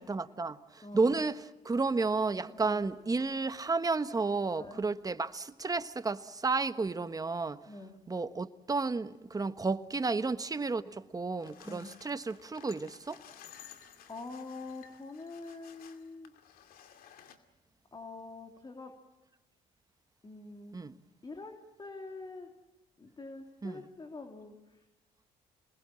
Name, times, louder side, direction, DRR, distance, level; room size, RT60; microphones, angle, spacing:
voice 1, 0.1-1.4 1.6-7.6 8.1-13.2 20.7-20.9 23.6-23.8, right 3 dB, 25° right, 1.3 m, -32 dB
voice 2, 0.8-1.2 2.7-2.9 4.6-4.8 7.7-8.1 11.6-11.9 14.1-16.3 17.9-18.9 20.2-20.8 21.2-22.5 23.0-24.8, left 3 dB, 30° left, 3.2 m, -45 dB
sound 1, 11.4-17.4, left 9 dB, 70° left, 2.4 m, -55 dB
27.5 x 20.5 x 7.6 m
supercardioid pair, 75°, 16 cm